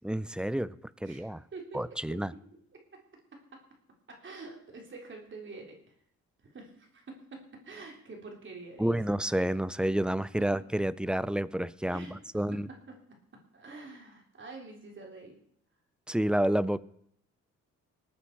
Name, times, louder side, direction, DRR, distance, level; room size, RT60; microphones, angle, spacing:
voice 1, 0.0-0.7 1.0-1.4 1.7-2.3 8.8-12.7 16.1-16.8, right 1 dB, 5° right, 18 dB, 0.4 m, -29 dB
voice 2, 1.0-2.2 2.7-2.8 3.5-3.6 4.1-5.9 6.4-9.0 10.4-10.5 11.9-12.2 12.5-13.0 13.5-15.4, right 3 dB, 40° right, 1 dB, 3.6 m, -47 dB
20.0 x 8.8 x 4.6 m, 0.69 s
cardioid pair, 90°, 30 cm